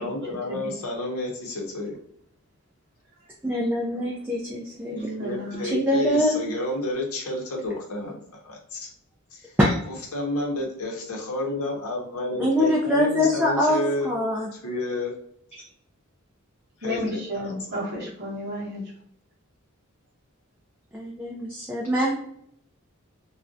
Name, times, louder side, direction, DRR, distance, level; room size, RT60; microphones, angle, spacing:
voice 1, 0.0-2.0 4.9-8.9 9.3-9.5 9.9-14.1 14.5-15.1 16.8-17.8, left 1 dB, 80° left, -1 dB, 0.7 m, -30 dB
voice 2, 3.4-5.1 5.6-6.4 9.6-9.7 12.4-14.5 20.9-22.1, left 1 dB, 10° right, -4 dB, 0.3 m, -23 dB
voice 3, 5.2-5.7 16.8-18.8, equal, 50° right, -3 dB, 0.8 m, -32 dB
2.4 x 2.1 x 2.5 m, 0.71 s
head